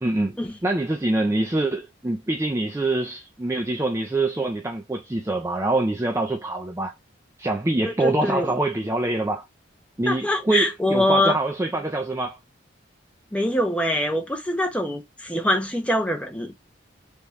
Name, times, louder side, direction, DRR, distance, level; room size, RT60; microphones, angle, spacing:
voice 1, 0.0-0.4 0.6-6.9 7.4-9.4 10.0-12.4, right 2 dB, 15° right, 0.3 m, -25 dB
voice 2, 7.8-8.5 10.1-11.3 13.3-16.5, left 1 dB, 5° left, 0.8 m, -24 dB
3.5 x 3.0 x 3.9 m
head